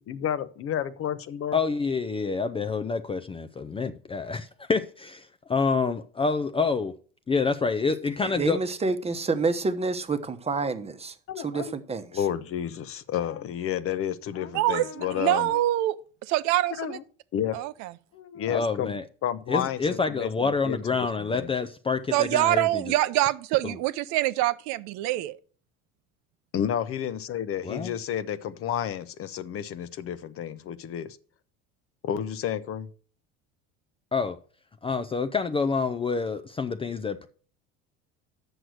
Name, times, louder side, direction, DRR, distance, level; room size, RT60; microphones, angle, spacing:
voice 1, 0.0-1.6 11.3-11.7 12.1-15.6 16.7-17.0 17.3-17.6 18.1-18.9 19.2-20.8 21.3-21.5 26.5-31.2 32.0-32.9, left 9 dB, 45° left, 0.7 m, -31 dB
voice 2, 1.5-7.0 7.3-8.6 18.5-19.0 19.5-22.8 23.6-23.8 27.6-27.9 34.1-34.4 34.8-37.3, left 4 dB, 20° left, 0.4 m, -27 dB
voice 3, 8.2-12.2, right 3 dB, 20° right, 1.0 m, -29 dB
voice 4, 14.5-16.0 16.3-17.0 17.5-17.9 22.1-25.4, right 16 dB, 65° right, 0.6 m, -25 dB
7.9 x 6.3 x 6.2 m
supercardioid pair, 95°, 31 cm